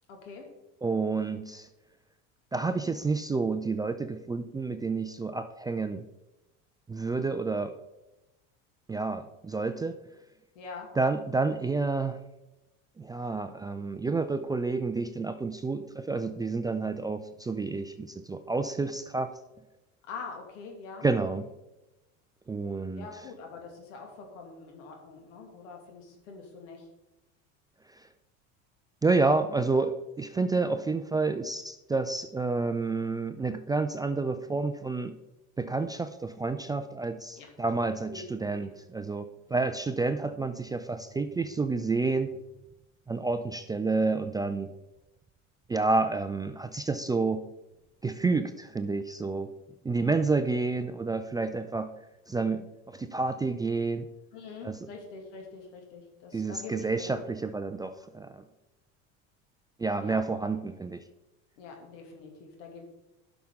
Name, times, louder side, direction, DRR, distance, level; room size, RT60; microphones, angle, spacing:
voice 1, 0.1-0.4 10.5-10.9 20.0-21.1 22.9-26.9 37.4-37.5 38.1-38.7 54.3-57.2 60.0-60.2 61.6-62.8, left 4 dB, 80° left, 2 dB, 2.4 m, -44 dB
voice 2, 0.8-1.7 2.5-6.1 6.9-7.8 8.9-10.0 11.0-12.2 13.0-19.4 21.0-21.4 22.5-23.1 29.0-35.1 35.6-42.3 43.1-44.7 45.7-47.5 48.0-49.5 49.8-51.9 52.3-54.1 54.6-54.8 56.3-58.4 59.8-61.0, right 3 dB, 10° right, 9 dB, 0.3 m, -29 dB
11.5 x 5.9 x 3.7 m, 0.98 s
supercardioid pair, 100°, 36 cm